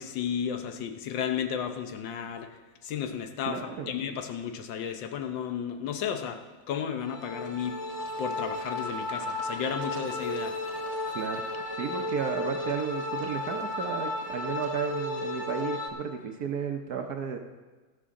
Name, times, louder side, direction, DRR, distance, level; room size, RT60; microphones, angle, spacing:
voice 1, 0.0-2.5 2.8-3.6 3.9-6.4 6.7-7.8 8.2-10.5, left 8 dB, 75° left, 6 dB, 1.6 m, -33 dB
voice 2, 3.4-3.9 11.1-11.4 11.7-17.4, right 7 dB, 60° right, 4 dB, 1.1 m, -33 dB
sound 1, 7.0-15.9, left 2 dB, 25° left, 0.9 m, -34 dB
14.0 x 13.0 x 3.7 m, 1.3 s
omnidirectional pair, 2.1 m